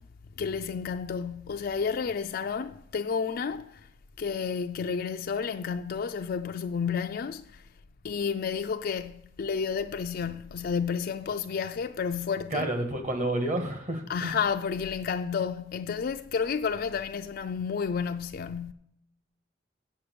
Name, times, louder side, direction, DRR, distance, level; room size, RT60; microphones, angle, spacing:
voice 1, 0.4-3.8 4.2-7.6 8.0-12.7 14.1-18.7, left 6 dB, 50° left, 0.4 m, -31 dB
voice 2, 12.5-14.4, right 1 dB, 40° right, 1.6 m, -30 dB
8.5 x 7.0 x 6.9 m
head